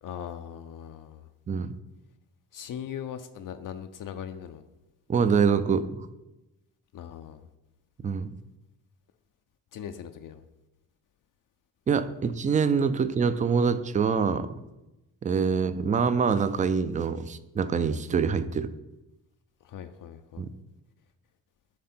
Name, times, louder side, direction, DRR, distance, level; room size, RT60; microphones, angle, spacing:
voice 1, 0.0-1.3 2.5-4.6 6.9-7.4 9.7-10.4 15.5-15.6 19.6-20.4, left 9 dB, 50° left, 7 dB, 0.5 m, -40 dB
voice 2, 5.1-6.1 8.0-8.3 11.9-14.5 15.2-18.7 20.4-20.5, right 6 dB, 20° right, 12 dB, 0.3 m, -25 dB
7.4 x 3.4 x 4.3 m, 0.98 s
cardioid pair, 80°, 41 cm